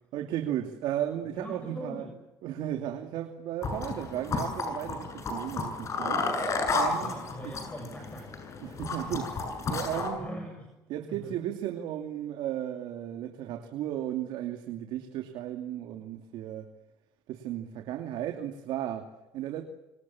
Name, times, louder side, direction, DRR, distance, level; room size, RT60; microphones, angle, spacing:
voice 1, 0.1-2.1 2.4-6.3 6.7-7.2 7.4-7.5 8.6-9.4 9.7-10.3 10.9-16.7 17.3-19.6, right 11 dB, 75° right, 5 dB, 2.8 m, -35 dB
voice 2, 1.2-2.2 6.9-8.3 9.9-10.7 11.1-11.3, equal, 15° left, 3 dB, 6.8 m, -42 dB
sound 1, 3.6-10.1, left 3 dB, 40° left, 7.9 m, -32 dB
27.0 x 25.5 x 7.3 m, 1.0 s
cardioid pair, 130°, 8 cm